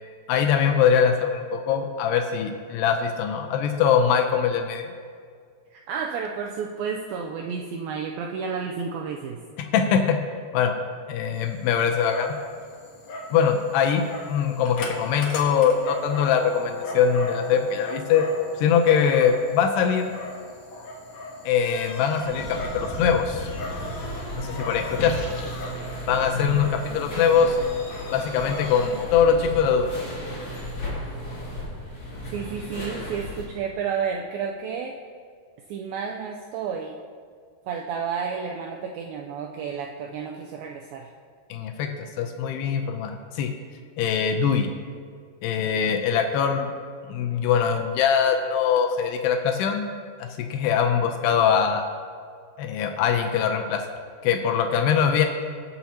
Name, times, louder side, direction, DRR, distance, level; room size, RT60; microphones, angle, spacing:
voice 1, 0.3-4.8 9.6-10.2 10.5-10.7 11.1-12.4 13.3-18.3 18.6-20.1 21.5-23.5 24.4-25.2 26.1-27.6 28.1-29.9 41.5-41.9 42.2-43.5 44.0-44.7 45.4-46.7 47.1-50.0 50.4-51.8 52.6-53.8 54.2-55.3, left 7 dB, 85° left, 5 dB, 2.7 m, -22 dB
voice 2, 5.7-9.4 26.9-27.2 32.3-35.0 35.7-37.0 37.7-41.1, right 6 dB, 85° right, 1 dB, 2.1 m, -31 dB
Dog, 11.3-29.1, left 1 dB, 65° left, 1.8 m, -37 dB
sound 1, 22.2-33.5, equal, 40° left, 3.0 m, -35 dB
21.0 x 7.0 x 2.8 m, 2.1 s
omnidirectional pair, 4.7 m